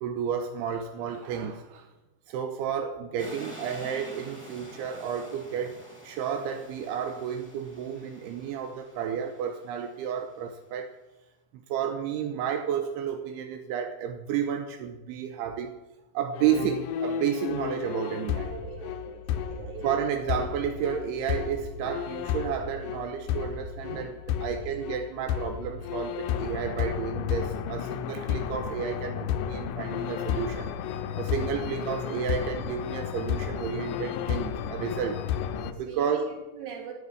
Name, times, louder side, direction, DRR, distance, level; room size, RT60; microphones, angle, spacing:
voice 1, 0.0-1.9 2.3-10.9 11.5-15.7 16.1-18.5 19.8-30.7 31.2-35.2 35.8-36.3, right 8 dB, 85° right, 2.8 m, -31 dB
sound 1, 3.2-10.3, equal, 5° right, 1.8 m, -47 dB
sound 2, 16.3-35.7, left 9 dB, 90° left, 1.8 m, -32 dB
voice 2, 18.4-20.1 24.4-24.7 35.5-36.9, right 6 dB, 50° right, 3.8 m, -43 dB
9.5 x 9.4 x 9.7 m
omnidirectional pair, 4.7 m